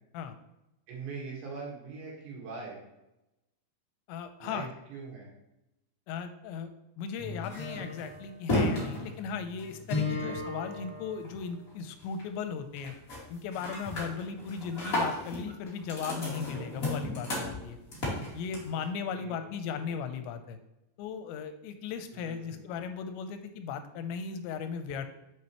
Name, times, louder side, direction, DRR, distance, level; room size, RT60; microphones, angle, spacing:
voice 1, 0.9-2.8 4.4-5.3 10.2-10.4 19.0-20.0 22.1-22.9, right 4 dB, 80° right, -3 dB, 3.7 m, -43 dB
voice 2, 4.1-4.7 6.1-6.7 7.0-12.9 13.3-17.8 18.3-20.6 21.0-25.1, left 6 dB, 85° left, 9 dB, 2.8 m, -37 dB
sound 1, 7.2-11.7 12.0-12.4 12.8-13.2 13.5-18.8, left 2 dB, 50° left, 1.0 m, -34 dB
7.2 x 6.3 x 3.0 m, 0.91 s
omnidirectional pair, 5.2 m